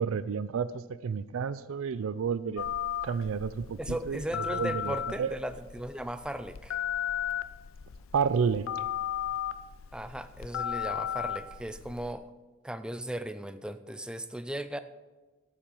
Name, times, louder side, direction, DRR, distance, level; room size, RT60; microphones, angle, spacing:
voice 1, 0.0-2.7 3.0-3.8 4.1-4.2 4.5-5.3 8.1-8.7, right 6 dB, 75° right, 16 dB, 0.4 m, -30 dB
Telephone, 2.6-12.1, left 9 dB, 75° left, 0.5 m, -35 dB
voice 2, 3.8-6.8 9.9-12.3 12.6-14.8, right 1 dB, 5° right, 11 dB, 0.4 m, -37 dB
13.5 x 7.3 x 5.4 m, 1.3 s
head